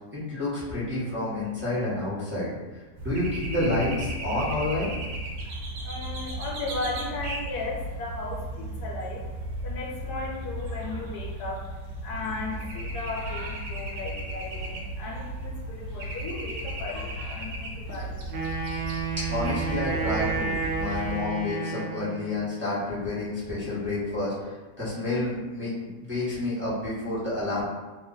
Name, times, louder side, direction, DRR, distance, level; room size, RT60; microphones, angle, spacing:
voice 1, 0.1-4.9 19.2-27.6, left 2 dB, 10° right, -12 dB, 1.0 m, -29 dB
sound 1, 3.0-21.2, right 1 dB, 85° right, 1.3 m, -35 dB
voice 2, 5.3-19.2 19.9-20.0 20.7-20.8 25.8-25.9, left 3 dB, 70° left, -2 dB, 1.1 m, -36 dB
Wind instrument woodwind instrument, 18.3-22.3, right 4 dB, 70° right, 0.6 m, -31 dB
3.1 x 2.4 x 3.9 m, 1.2 s
omnidirectional pair, 1.9 m